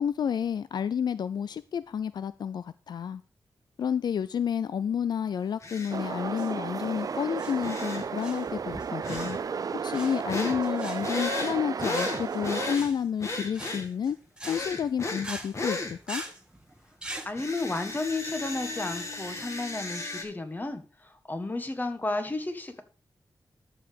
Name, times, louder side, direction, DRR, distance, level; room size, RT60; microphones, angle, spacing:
voice 1, 0.0-3.2 3.8-9.4 9.8-14.2 14.5-16.2, left 8 dB, 75° left, 0.4 m, -30 dB
sound 1, 5.6-6.0 7.6-8.1 9.0-9.4 10.3-10.6 11.0-12.9 13.2-13.9 14.4-15.3 15.5-15.9 17.3-20.2, left 2 dB, 40° left, 2.2 m, -34 dB
sound 2, 5.9-12.8, right 6 dB, 55° right, 0.4 m, -33 dB
sound 3, 6.2-17.3, right 1 dB, 10° right, 1.4 m, -43 dB
voice 2, 17.2-22.8, left 2 dB, 25° left, 1.6 m, -33 dB
13.0 x 4.9 x 5.2 m
wide cardioid pair, 85°, 7 cm